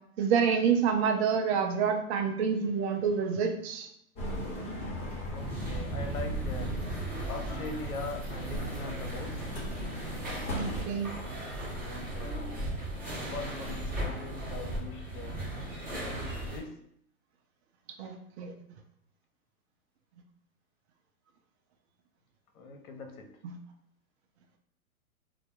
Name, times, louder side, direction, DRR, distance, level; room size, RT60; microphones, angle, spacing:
voice 1, 0.2-3.9 10.5-11.1 18.0-18.5 23.4-23.6, right 6 dB, 45° right, 4 dB, 0.5 m, -28 dB
sound 1, 4.1-10.8, left 1 dB, 15° left, 0.7 m, -38 dB
voice 2, 5.3-6.8 7.3-9.4 11.7-12.5 13.2-15.4 15.9-16.8 22.5-23.3, left 3 dB, 70° left, 4 dB, 0.6 m, -42 dB
sound 2, 5.3-16.6, right 1 dB, 20° right, 0.8 m, -36 dB
2.2 x 2.0 x 2.9 m, 0.71 s
hypercardioid pair, 120°, 45 cm